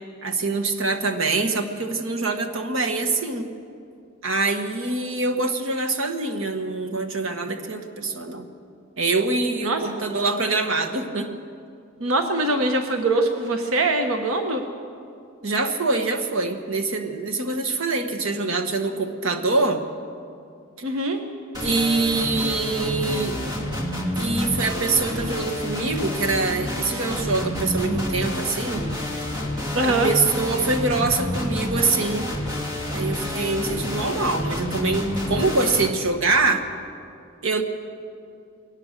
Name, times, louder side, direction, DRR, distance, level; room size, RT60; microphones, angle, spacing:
voice 1, 0.2-3.5 4.2-8.5 9.0-11.3 15.4-19.8 21.6-23.6 24.2-28.8 29.8-32.3 32.9-36.6 37.4-37.6, right 3 dB, 75° right, 6 dB, 1.5 m, -24 dB
voice 2, 12.0-14.6 20.8-21.2 29.7-30.1, right 2 dB, 90° right, 5 dB, 1.3 m, -22 dB
sound 1, 21.5-35.9, left 1 dB, 20° right, 2.4 m, -28 dB
21.5 x 19.0 x 6.7 m, 2.4 s
head